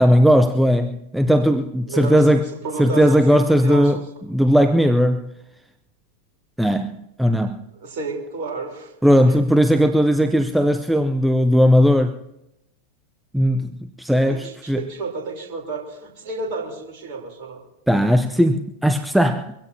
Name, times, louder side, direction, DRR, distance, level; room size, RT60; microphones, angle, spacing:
voice 1, 0.0-2.5 2.8-4.0 4.3-5.2 6.6-7.6 9.0-12.2 13.3-13.7 14.0-14.8 17.9-19.5, equal, 5° right, 0.7 m, -17 dB
voice 2, 1.9-3.2 3.6-4.0 7.8-8.9 14.3-17.6, right 3 dB, 50° right, 3.8 m, -31 dB
24.0 x 16.5 x 2.9 m
figure-of-eight pair, 90°, 0 cm